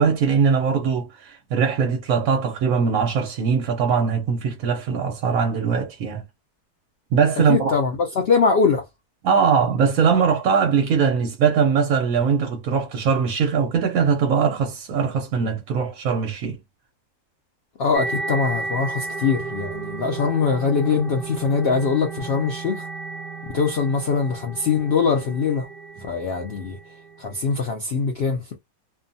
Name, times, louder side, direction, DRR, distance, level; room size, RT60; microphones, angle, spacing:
voice 1, 0.0-6.2 7.1-7.8 9.2-16.6 26.0-26.1, right 6 dB, 65° right, 1.0 m, -21 dB
voice 2, 7.5-8.8 17.8-22.8 23.5-25.7 26.0-26.8 27.2-28.6, left 5 dB, 90° left, 0.5 m, -22 dB
sound 1, 17.9-27.5, right 4 dB, ahead, 0.5 m, -33 dB
2.6 x 2.3 x 2.6 m
omnidirectional pair, 1.8 m